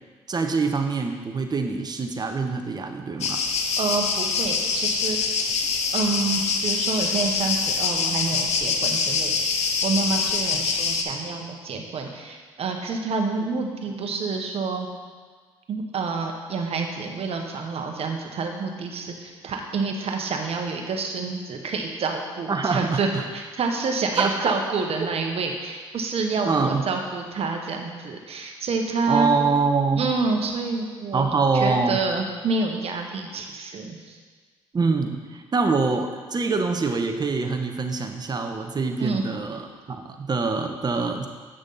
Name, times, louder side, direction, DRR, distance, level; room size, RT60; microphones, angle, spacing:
voice 1, 0.3-3.4 22.5-23.2 24.2-24.6 26.4-26.8 29.1-30.1 31.1-32.0 34.7-39.6 39.9-41.3, right 4 dB, 35° right, 5 dB, 1.1 m, -24 dB
sound 1, 3.2-11.0, left 5 dB, 65° left, 0.8 m, -24 dB
voice 2, 3.8-5.2 5.9-14.9 15.7-29.3 30.0-31.3 31.5-34.2 39.0-39.2, right 4 dB, 55° right, 3 dB, 1.2 m, -28 dB
9.0 x 6.3 x 4.1 m, 1.5 s
supercardioid pair, 60°, 12 cm